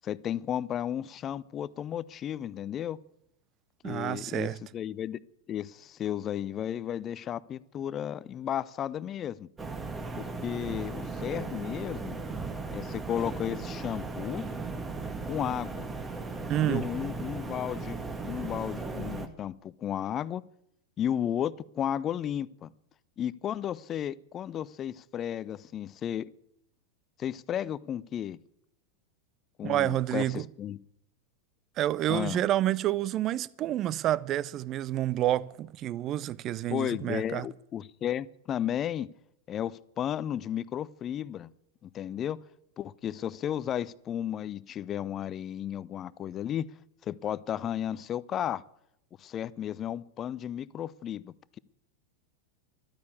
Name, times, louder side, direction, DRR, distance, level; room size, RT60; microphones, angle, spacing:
voice 1, 0.0-3.0 3.8-5.2 5.5-9.5 10.2-12.2 12.7-14.4 15.3-15.9 16.5-18.0 18.2-20.4 21.0-22.7 23.2-26.3 27.2-28.4 29.6-30.8 32.1-32.4 36.7-39.1 39.5-41.5 41.8-42.4 42.8-46.7 47.0-48.6 49.2-51.6, left 10 dB, 30° left, 0.5 m, -33 dB
voice 2, 3.8-4.6 16.5-16.9 29.6-30.5 31.8-37.5, right 13 dB, 35° right, 0.5 m, -29 dB
sound 1, 9.6-19.3, right 3 dB, 15° right, 1.6 m, -37 dB
14.0 x 12.0 x 8.5 m
figure-of-eight pair, 90°, 0 cm